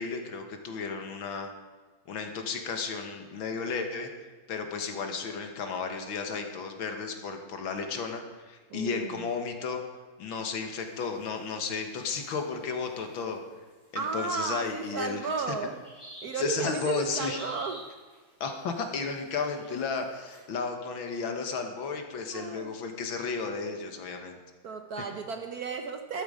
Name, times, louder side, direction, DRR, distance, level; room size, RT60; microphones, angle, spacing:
voice 1, 0.0-1.5 2.1-4.1 4.5-9.8 10.2-13.4 13.9-15.2 15.5-15.6 16.4-17.4 18.4-24.4, left 5 dB, 70° left, 5 dB, 2.1 m, -33 dB
voice 2, 8.7-9.3 13.9-15.8 16.2-17.9 22.3-22.8 24.6-26.2, right 5 dB, 60° right, 6 dB, 1.1 m, -34 dB
sound 1, 10.8-11.5 12.0-12.5 12.9-13.3 13.7-14.1 14.4-15.1 15.4-20.4, equal, ahead, 5.5 m, -49 dB
13.0 x 13.0 x 5.0 m, 1.4 s
omnidirectional pair, 2.3 m